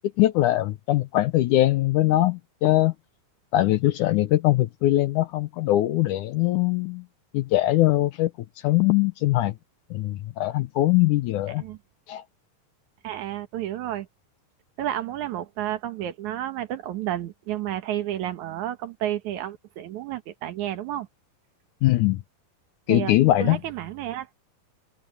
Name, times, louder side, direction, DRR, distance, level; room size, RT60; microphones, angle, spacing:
voice 1, 0.2-2.9 3.5-7.0 7.3-8.3 8.6-9.5 9.9-11.6 12.1-12.2 21.8-22.2 22.9-23.6, left 16 dB, 80° left, 1.9 m, -21 dB
voice 2, 13.0-14.1 14.8-21.1 22.9-23.1 23.4-24.3, right 12 dB, 65° right, 2.3 m, -31 dB
omnidirectional pair, 4.2 m